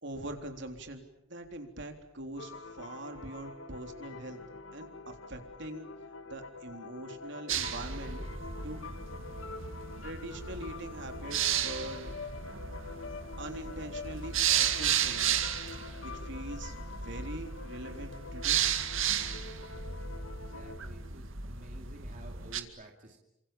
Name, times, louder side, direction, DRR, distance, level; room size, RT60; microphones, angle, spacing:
voice 1, 0.0-4.4 4.7-5.9 6.3-8.2 8.6-8.9 10.0-12.1 13.4-15.4 16.0-18.6, right 1 dB, 65° right, 5 dB, 3.8 m, -43 dB
sound 1, 2.4-20.8, left 4 dB, 80° left, 1.9 m, -46 dB
sound 2, 7.5-22.6, right 9 dB, 80° right, 2.2 m, -34 dB
voice 2, 20.4-23.2, right 1 dB, 40° right, 2 dB, 2.7 m, -52 dB
30.0 x 26.5 x 7.2 m, 0.84 s
head